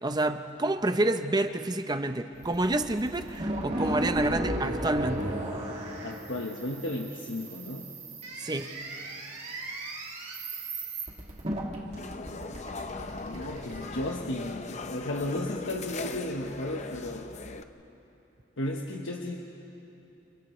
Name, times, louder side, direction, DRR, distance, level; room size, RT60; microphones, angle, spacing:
voice 1, 0.0-5.3 8.4-8.7, right 2 dB, 20° right, 8 dB, 0.7 m, -28 dB
sound 1, 2.4-14.1, right 1 dB, 35° right, 2.4 m, -35 dB
voice 2, 6.0-7.9 13.2-17.3 18.6-19.4, left 1 dB, 85° left, 0 dB, 1.2 m, -34 dB
sound 2, 11.9-17.6, left 3 dB, 40° left, 0.7 m, -39 dB
30.0 x 29.5 x 3.2 m, 3.0 s
head